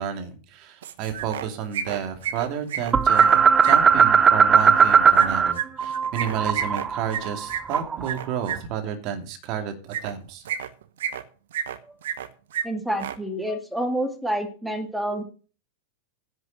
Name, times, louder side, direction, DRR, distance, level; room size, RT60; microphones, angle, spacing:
voice 1, 0.0-10.4, right 8 dB, 40° right, 6 dB, 2.5 m, -31 dB
sound 1, 0.8-1.5 1.7-3.8 5.2-8.6 9.9-10.1 10.5-11.2 11.5-12.3 12.5-12.6 12.9-13.2, right 9 dB, 60° right, 1.1 m, -30 dB
sound 2, 2.9-5.5 5.8-8.1, right 6 dB, 20° right, 0.7 m, -18 dB
voice 2, 12.6-15.2, right 1 dB, ahead, 5 dB, 2.1 m, -28 dB
10.5 x 6.3 x 7.5 m, 0.37 s
figure-of-eight pair, 90°, 0 cm